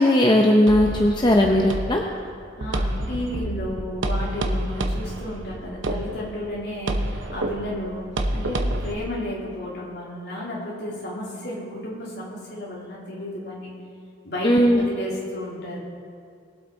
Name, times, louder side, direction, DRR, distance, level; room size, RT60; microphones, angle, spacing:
voice 1, 0.0-2.0 14.4-14.9, left 1 dB, 25° left, 1 dB, 0.7 m, -17 dB
sound 1, 0.7-8.9, right 1 dB, 85° right, 0.9 m, -29 dB
voice 2, 2.6-13.7 14.2-15.8, left 1 dB, 60° left, -5 dB, 3.4 m, -32 dB
21.0 x 8.0 x 4.0 m, 2.3 s
head